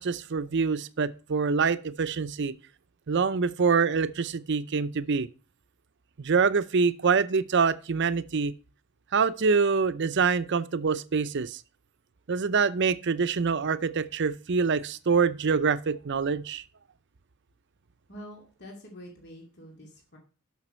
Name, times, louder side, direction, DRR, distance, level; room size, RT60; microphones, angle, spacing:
voice 1, 0.0-2.5 3.1-5.3 6.2-8.5 9.1-11.6 12.3-16.6, right 5 dB, 55° right, 0.6 m, -25 dB
voice 2, 18.1-20.2, equal, 55° left, 2.6 m, -46 dB
12.0 x 5.9 x 4.3 m
head